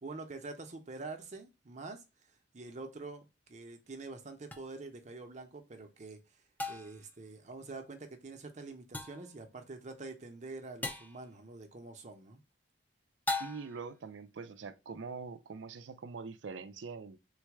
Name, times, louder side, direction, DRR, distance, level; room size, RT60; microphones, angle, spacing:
voice 1, 0.0-2.0 2.5-6.2 6.7-12.4, right 3 dB, 40° right, 0.7 m, -46 dB
sound 1, 4.5-4.6 6.6-7.1 8.9-9.3 10.8-11.2 13.3-13.9, left 2 dB, 10° left, 0.4 m, -37 dB
voice 2, 13.4-17.2, right 5 dB, 85° right, 0.5 m, -44 dB
3.9 x 2.2 x 4.5 m
head